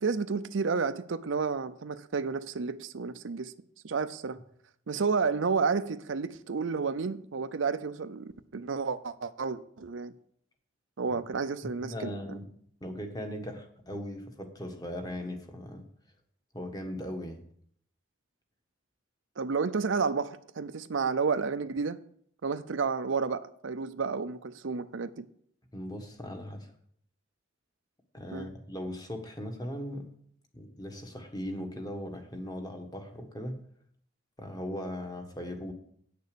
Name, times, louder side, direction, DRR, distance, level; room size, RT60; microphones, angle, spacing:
voice 1, 0.0-3.5 3.8-4.4 4.9-10.1 11.0-12.4 19.4-22.0 22.4-25.3 28.3-28.5, right 5 dB, 75° right, 0.6 m, -31 dB
voice 2, 11.6-12.4 12.8-15.8 16.5-17.4 25.7-26.7 28.1-30.1 30.5-33.6 34.4-35.7, equal, 20° left, 1.3 m, -38 dB
9.2 x 6.7 x 6.8 m
head